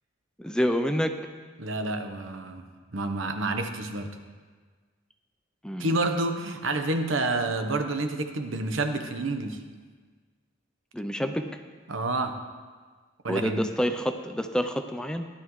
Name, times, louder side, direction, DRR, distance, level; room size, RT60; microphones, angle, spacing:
voice 1, 0.4-1.1 5.6-6.0 10.9-11.4 13.3-15.3, equal, 5° left, 6 dB, 0.4 m, -27 dB
voice 2, 1.6-2.7 2.9-4.1 5.8-9.6 11.9-12.4 13.2-13.6, right 2 dB, 75° right, 7 dB, 1.0 m, -29 dB
16.0 x 11.5 x 3.2 m, 1.5 s
head